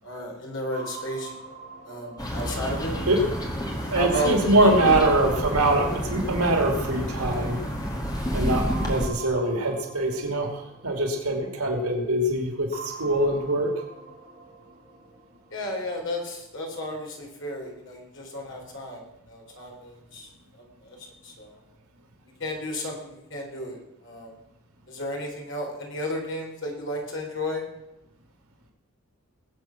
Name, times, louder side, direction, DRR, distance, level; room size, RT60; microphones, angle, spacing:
voice 1, 0.0-1.4 1.8-3.3 3.9-4.3 4.6-5.0 15.5-20.3 20.6-21.0 21.2-21.6 22.4-24.3 24.9-27.6, equal, 55° left, 0 dB, 3.9 m, -33 dB
sound 1, 0.7-4.1 4.7-7.6 8.7-11.8 12.7-15.8, right 3 dB, 35° right, 2.5 m, -44 dB
sound 2, 2.2-9.1, equal, 15° left, 2.1 m, -30 dB
voice 2, 3.9-7.6 8.3-13.7, right 2 dB, 90° right, 3 dB, 2.7 m, -23 dB
21.0 x 7.9 x 6.0 m, 0.89 s
head